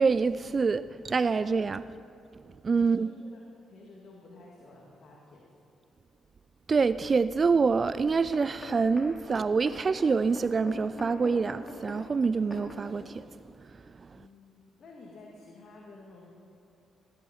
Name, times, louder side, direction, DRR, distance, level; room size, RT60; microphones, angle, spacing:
voice 1, 0.0-1.9 2.6-3.1 6.7-13.2 14.0-14.2, right 4 dB, 40° right, 15 dB, 0.3 m, -26 dB
voice 2, 2.8-3.4 3.7-5.4 14.1-16.3, left 2 dB, 55° left, -3 dB, 2.4 m, -51 dB
sound 1, 8.1-13.0 13.6-13.7, left 1 dB, 15° left, 3.8 m, -43 dB
18.0 x 11.0 x 5.6 m, 2.5 s
supercardioid pair, 65°, 0 cm